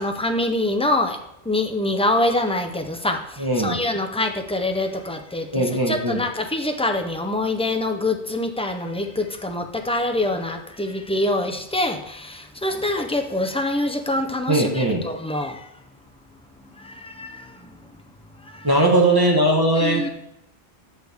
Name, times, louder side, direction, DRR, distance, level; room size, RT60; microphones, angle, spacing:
voice 1, 0.0-15.7 16.8-17.7 18.4-18.7 19.8-20.1, left 1 dB, 10° left, 4 dB, 0.4 m, -25 dB
voice 2, 3.4-3.8 5.5-6.2 14.5-15.0 18.6-20.0, right 1 dB, 20° right, -2 dB, 1.3 m, -19 dB
8.2 x 6.4 x 3.5 m, 0.80 s
omnidirectional pair, 1.1 m